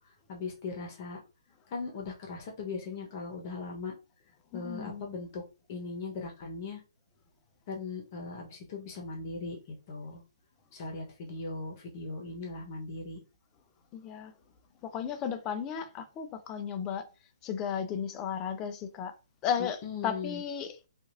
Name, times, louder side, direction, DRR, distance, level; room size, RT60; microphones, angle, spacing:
voice 1, 0.3-1.2 1.7-3.9 4.5-5.4 5.7-6.8 7.7-10.2 10.7-13.2 19.6-20.4, left 3 dB, 35° left, 1.0 m, -39 dB
voice 2, 4.5-5.0 13.9-14.3 14.8-17.1 17.4-19.1 19.4-20.8, left 8 dB, 20° left, 0.4 m, -34 dB
2.8 x 2.5 x 2.6 m
hypercardioid pair, 145°, 3 cm